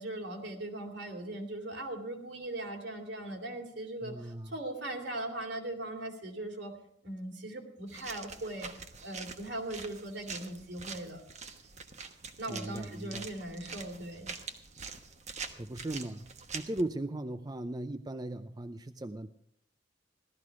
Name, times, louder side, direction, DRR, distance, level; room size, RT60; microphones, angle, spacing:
voice 1, 0.0-6.7 7.0-8.7 9.0-11.2 12.4-14.3, right 1 dB, 65° right, 2 dB, 2.9 m, -39 dB
voice 2, 4.0-4.5 12.5-13.3 15.5-16.3 16.5-19.3, right 1 dB, 20° right, 8 dB, 0.5 m, -37 dB
sound 1, 7.9-16.8, right 5 dB, 40° right, 1.2 m, -45 dB
17.0 x 13.0 x 4.8 m, 0.71 s
head